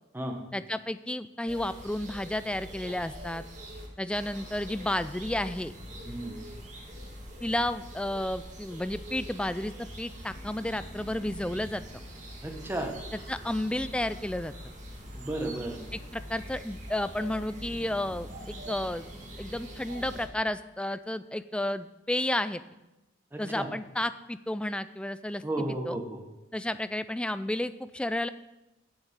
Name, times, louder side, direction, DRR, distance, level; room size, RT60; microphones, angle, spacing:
voice 1, 0.5-3.4 4.0-5.7 7.4-11.8 13.3-14.5 15.9-18.3 18.7-19.0 19.4-22.6 23.4-25.4 25.9-26.0 26.5-28.3, left 1 dB, 5° left, 13 dB, 0.3 m, -32 dB
sound 1, 1.5-20.3, equal, 40° right, 2.1 m, -43 dB
voice 2, 6.0-6.4 12.4-12.9 15.1-15.8 23.3-23.7 25.4-26.2, right 1 dB, 10° right, 2 dB, 1.4 m, -33 dB
7.4 x 7.1 x 8.2 m, 0.97 s
head